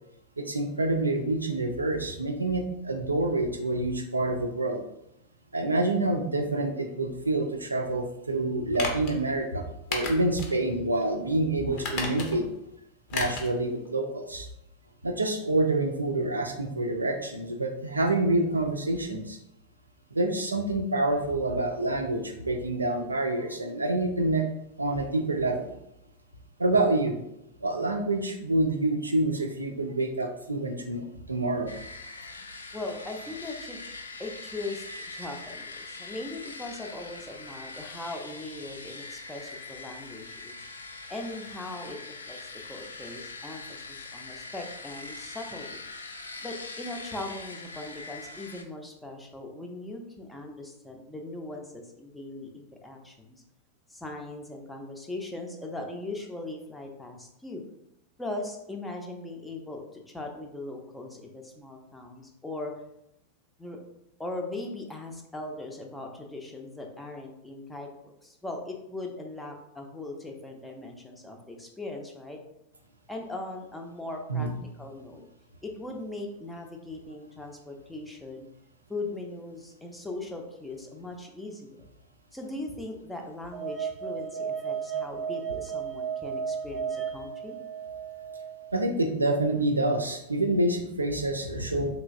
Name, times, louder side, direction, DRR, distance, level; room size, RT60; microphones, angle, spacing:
voice 1, 0.4-4.8 5.5-12.4 13.1-14.5 15.0-19.2 20.1-24.5 24.8-25.7 26.6-27.2 27.6-31.7 74.3-74.6 88.7-91.9, right 2 dB, 80° right, 4 dB, 0.4 m, -27 dB
sound 1, 8.7-9.1 9.9-10.6 10.9-11.0 11.8-12.5 13.1-13.5 13.8-13.9, left 3 dB, 45° left, 0.7 m, -33 dB
sound 2, 31.7-48.6, left 3 dB, 75° left, 0.3 m, -42 dB
voice 2, 32.7-33.8 34.2-40.6 41.1-42.0 42.3-42.4 42.7-43.6 43.9-45.8 46.4-53.4 53.9-57.6 58.2-62.7 63.6-63.8 64.2-72.4 73.1-74.5 74.8-75.2 75.6-78.5 78.9-81.9 82.3-87.6, left 2 dB, 5° left, 1 dB, 0.5 m, -39 dB
sound 3, 83.5-88.6, right 7 dB, 25° right, 0.8 m, -34 dB
3.2 x 3.0 x 2.5 m, 0.81 s
figure-of-eight pair, 90°, 0 cm